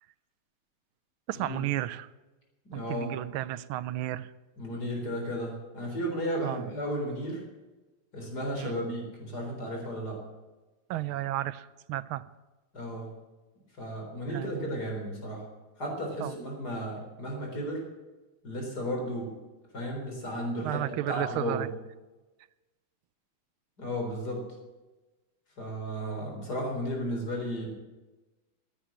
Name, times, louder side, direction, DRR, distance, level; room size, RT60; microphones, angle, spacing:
voice 1, 1.3-2.1 2.7-4.3 6.4-6.7 8.5-8.8 10.9-12.2 14.3-14.9 16.2-16.4 20.6-21.7, right 14 dB, 85° right, 16 dB, 1.5 m, -33 dB
voice 2, 2.6-3.1 4.6-7.4 8.1-10.2 12.7-13.1 13.8-15.4 15.8-17.8 18.4-19.3 19.7-20.8 21.1-21.7 23.8-24.4 25.6-27.7, equal, 45° left, 1 dB, 4.5 m, -34 dB
15.0 x 9.1 x 7.4 m, 1.1 s
omnidirectional pair, 2.3 m